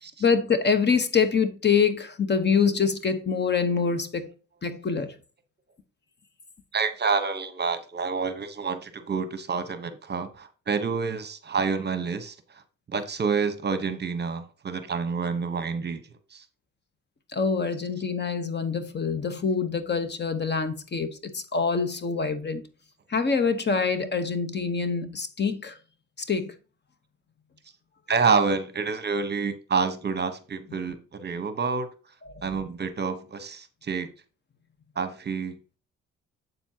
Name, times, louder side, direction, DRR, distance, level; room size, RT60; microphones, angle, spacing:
voice 1, 0.2-4.3 4.6-5.1 17.3-22.6 23.1-25.7 26.3-26.5 32.3-32.4, left 5 dB, 35° left, 1.1 m, -25 dB
voice 2, 6.7-12.6 12.9-16.0 16.3-16.4 28.1-31.9 32.4-34.1 35.0-35.6, right 5 dB, 35° right, 1.0 m, -28 dB
7.9 x 7.1 x 2.8 m
cardioid pair, 90°, 30 cm